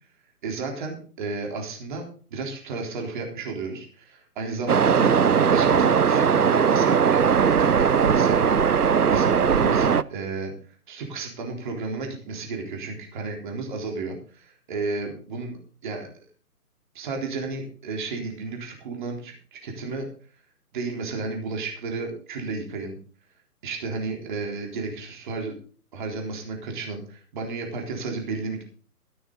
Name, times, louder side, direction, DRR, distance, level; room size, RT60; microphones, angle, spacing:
voice 1, 0.4-2.0 2.3-5.1 5.5-10.5 10.9-15.6 15.8-16.3 16.9-20.1 20.7-23.0 23.6-25.5 25.9-28.6, right 3 dB, 30° right, 2 dB, 3.8 m, -32 dB
Waves surf, 4.7-10.0, right 7 dB, 75° right, 0.8 m, -19 dB
14.5 x 12.5 x 4.0 m, 0.40 s
figure-of-eight pair, 140°, 46 cm